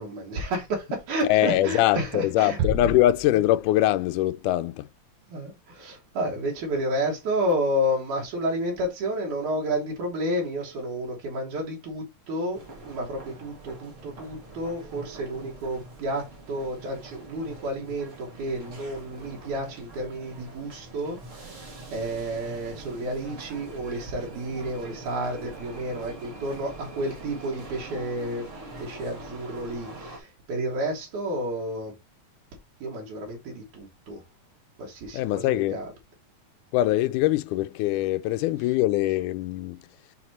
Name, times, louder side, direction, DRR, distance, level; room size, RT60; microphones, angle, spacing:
voice 1, 0.0-3.0 5.3-28.5 28.8-31.9 32.8-34.2 34.8-35.9, equal, 75° right, 2.9 m, -31 dB
voice 2, 1.3-4.9 35.1-35.8 36.7-39.8, left 14 dB, 85° left, 2.0 m, -23 dB
sound 1, 2.6-4.0, right 2 dB, 60° right, 1.7 m, -31 dB
sound 2, 12.5-30.2, right 2 dB, 35° right, 1.4 m, -43 dB
6.1 x 4.2 x 4.2 m
omnidirectional pair, 3.6 m